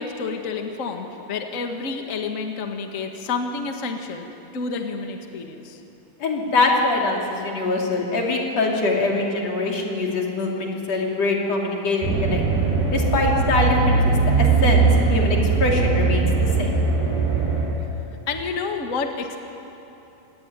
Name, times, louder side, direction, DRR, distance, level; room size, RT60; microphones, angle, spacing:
voice 1, 0.0-4.3 4.5-5.8 18.3-19.4, left 4 dB, 75° left, 4 dB, 0.7 m, -29 dB
voice 2, 6.2-12.4 12.9-16.3 16.6-16.7, left 2 dB, 40° left, -1 dB, 4.1 m, -23 dB
sound 1, 12.0-17.7, right 4 dB, 75° right, 8.2 m, -20 dB
26.0 x 19.5 x 9.8 m, 2.9 s
omnidirectional pair, 4.8 m